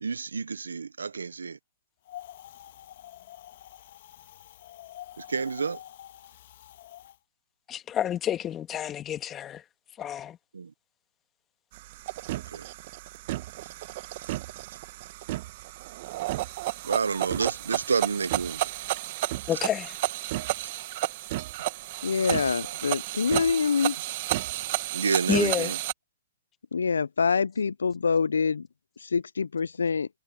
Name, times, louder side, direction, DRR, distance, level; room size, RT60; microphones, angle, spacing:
voice 1, 0.0-1.6 5.3-5.8 10.5-10.7 12.5-12.6 16.9-18.6 24.9-25.7, right 5 dB, 90° right, 0.7 m, -29 dB
Wind, 2.1-7.2, left 13 dB, 55° left, 1.7 m, -47 dB
voice 2, 7.7-9.6 10.0-10.4 19.5-20.0 25.3-25.8, left 10 dB, 20° left, 1.7 m, -29 dB
sound 1, 11.7-25.9, right 17 dB, 45° right, 1.0 m, -32 dB
voice 3, 22.0-24.0 26.7-28.7 29.0-30.1, left 5 dB, 85° left, 0.4 m, -25 dB
hypercardioid pair, 135°, 0 cm